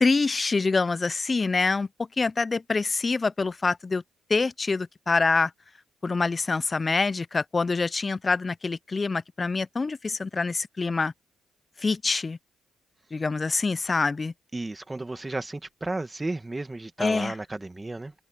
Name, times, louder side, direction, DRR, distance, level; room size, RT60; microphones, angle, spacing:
voice 1, 0.0-4.0 4.3-5.5 6.0-11.1 11.8-12.4 13.1-14.3 17.0-17.4, left 4 dB, 30° left, 0.3 m, -25 dB
voice 2, 14.5-18.1, right 2 dB, 15° right, 1.5 m, -33 dB
cardioid pair, 90°, 0 cm